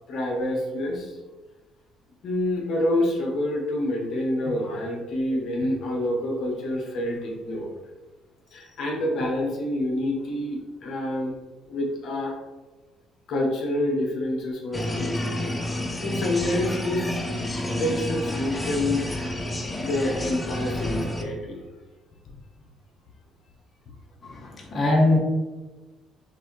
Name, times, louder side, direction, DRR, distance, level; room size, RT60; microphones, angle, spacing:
voice 1, 0.1-1.2 2.2-7.8 8.5-11.4 11.7-12.3 13.3-15.6 16.0-17.5 17.8-19.1 19.8-21.7 22.2-22.4 23.9-24.0, left 1 dB, 55° left, -1 dB, 1.0 m, -27 dB
sound 1, 14.7-21.2, left 1 dB, 10° left, 0.4 m, -29 dB
voice 2, 24.2-25.2, left 2 dB, 25° left, -3 dB, 0.9 m, -21 dB
6.0 x 2.6 x 3.1 m, 1.2 s
cardioid pair, 130°, 0 cm